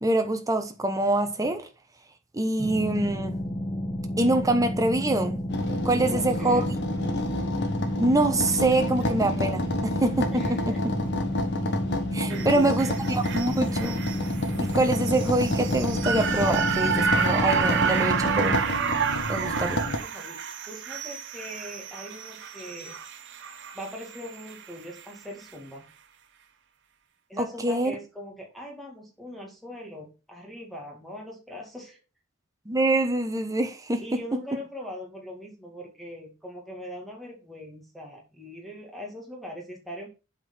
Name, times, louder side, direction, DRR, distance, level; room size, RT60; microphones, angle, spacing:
voice 1, 0.0-1.7 2.3-3.3 4.2-5.4 5.7-6.6 8.0-10.9 12.1-14.0 14.6-18.6 19.3-19.8 27.4-27.9 32.7-34.2, right 2 dB, 15° right, 1.1 m, -25 dB
sound 1, 2.6-18.6, equal, 15° left, 1.4 m, -31 dB
sound 2, 5.5-20.0, left 1 dB, 55° left, 1.4 m, -30 dB
voice 2, 6.0-6.7 10.3-10.8 12.3-12.8 19.5-23.0 23.7-25.9 27.3-32.0 34.0-40.1, equal, ahead, 2.2 m, -41 dB
sound 3, 12.3-24.6 25.0-25.1, right 6 dB, 55° right, 0.9 m, -30 dB
7.9 x 4.6 x 5.8 m
head